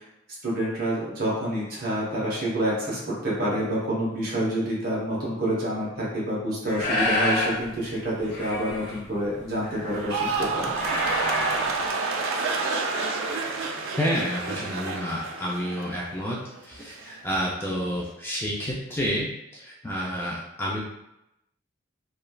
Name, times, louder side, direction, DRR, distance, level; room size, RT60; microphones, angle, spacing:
voice 1, 0.4-10.7, equal, 50° right, -5 dB, 0.9 m, -28 dB
sound 1, 6.6-7.6 7.9-11.8, left 1 dB, 65° left, 1.1 m, -29 dB
sound 2, 9.9-16.2 16.5-17.0, right 3 dB, 85° right, 0.4 m, -29 dB
voice 2, 14.0-19.3 19.5-20.8, equal, 10° left, -5 dB, 0.3 m, -29 dB
3.1 x 2.4 x 2.2 m, 0.86 s
head